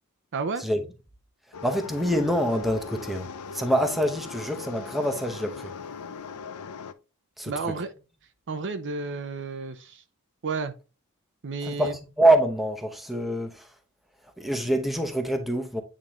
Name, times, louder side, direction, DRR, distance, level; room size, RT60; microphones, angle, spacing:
voice 1, 0.3-0.6 7.5-7.9 8.5-10.0 10.4-10.7 11.4-11.9, right 4 dB, 55° right, 0.6 m, -31 dB
sound 1, 1.5-6.9, left 5 dB, 80° left, 0.6 m, -39 dB
voice 2, 1.6-5.7 7.4-7.7 11.6-13.7 14.4-15.8, right 1 dB, ahead, 0.9 m, -25 dB
8.6 x 3.7 x 3.0 m
head